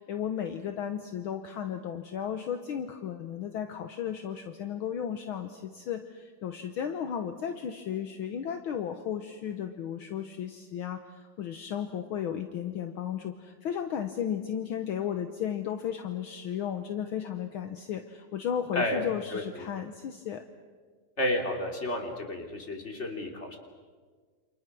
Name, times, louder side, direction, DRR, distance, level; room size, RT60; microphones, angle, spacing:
voice 1, 0.0-20.4, left 9 dB, 60° left, 7 dB, 1.4 m, -34 dB
voice 2, 18.7-19.0 19.3-19.4 21.2-23.6, left 1 dB, 25° left, 2 dB, 3.0 m, -31 dB
28.5 x 27.5 x 6.1 m, 1.5 s
omnidirectional pair, 3.4 m